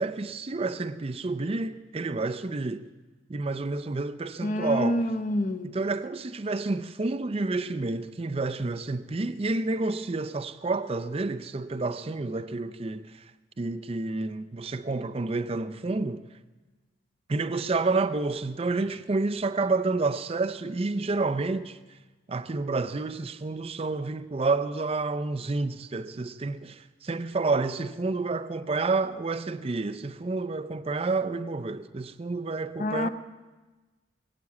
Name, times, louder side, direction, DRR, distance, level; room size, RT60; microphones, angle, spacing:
voice 1, 0.0-2.8 3.3-5.0 5.6-13.2 13.6-16.2 17.3-21.8 22.3-33.1, right 3 dB, 30° right, 0.4 m, -29 dB
voice 2, 4.4-5.7 32.8-33.1, left 1 dB, 40° left, 0.8 m, -27 dB
20.5 x 8.3 x 8.4 m
head